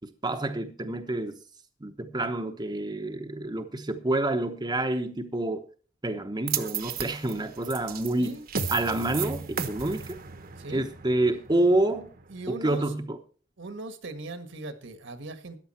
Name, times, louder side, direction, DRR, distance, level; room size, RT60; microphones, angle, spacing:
voice 1, 0.2-1.4 1.8-5.6 6.0-8.4 8.7-10.2 10.7-12.1 12.5-13.1, right 2 dB, 20° right, 5 dB, 0.9 m, -28 dB
sound 1, 6.5-12.7, right 6 dB, 50° right, 1.1 m, -35 dB
voice 2, 10.6-10.9 12.3-13.0 13.6-15.6, right 2 dB, 65° right, 10 dB, 1.6 m, -39 dB
14.0 x 10.5 x 4.3 m, 0.40 s
head